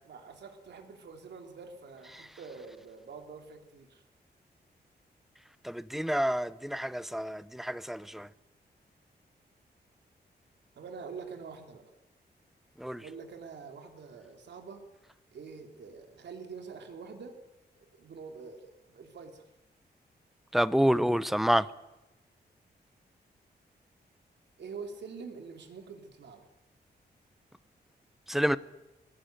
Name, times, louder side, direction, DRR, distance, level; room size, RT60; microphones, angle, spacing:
voice 1, 0.0-4.0 10.7-11.8 13.0-14.8 15.3-17.4 17.8-19.4 24.6-26.5, right 5 dB, 85° right, 3.4 m, -46 dB
voice 2, 5.6-8.3 12.8-13.0 20.5-21.7 28.3-28.6, equal, ahead, 0.7 m, -28 dB
21.5 x 18.5 x 9.1 m
wide cardioid pair, 135°, 18 cm